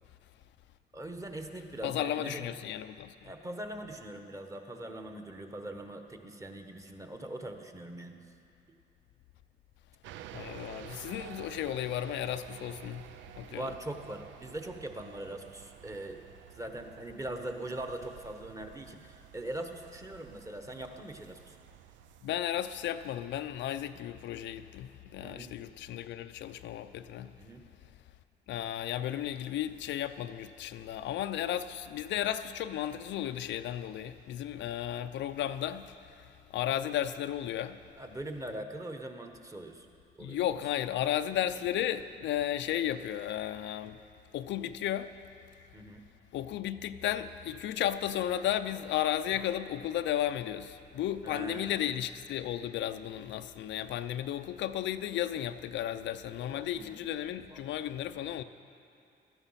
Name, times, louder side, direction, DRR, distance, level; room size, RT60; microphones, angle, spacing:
voice 1, 0.9-2.5 3.2-8.2 13.5-16.2 16.5-21.6 25.2-25.5 27.4-27.6 38.0-39.9 40.1-40.4 44.0-44.1 45.7-46.0 49.4-49.5 51.2-51.8 56.4-58.4, right 1 dB, 15° right, 1.2 m, -42 dB
voice 2, 1.8-3.1 10.3-13.0 13.3-13.7 22.2-27.3 28.5-37.8 40.2-44.0 44.3-45.1 46.3-58.4, left 11 dB, 75° left, 0.5 m, -34 dB
sound 1, 10.0-23.0, right 12 dB, 85° right, 0.5 m, -51 dB
16.5 x 12.5 x 5.7 m
cardioid pair, 125°, 19 cm